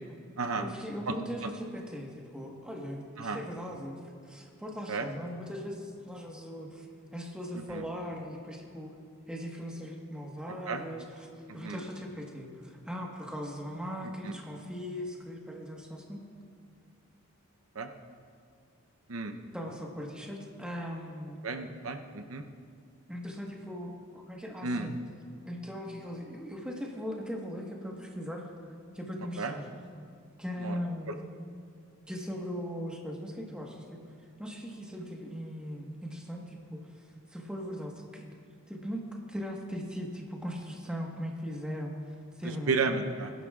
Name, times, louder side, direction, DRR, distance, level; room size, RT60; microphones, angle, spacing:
voice 1, 0.6-4.0 4.2-6.9 7.1-8.9 9.3-11.3 11.5-16.3 19.5-21.4 23.1-25.0 25.4-29.7 30.4-31.2 32.1-34.0 34.4-38.2 38.7-42.0 42.4-42.7, equal, 5° right, -1 dB, 1.4 m, -39 dB
voice 2, 11.5-11.8 14.2-14.3 17.8-17.9 19.1-19.3 21.4-22.4 24.6-24.9 29.4-29.5 30.6-30.8 42.7-43.3, right 4 dB, 85° right, 7 dB, 0.7 m, -32 dB
21.5 x 11.0 x 2.4 m, 2.3 s
head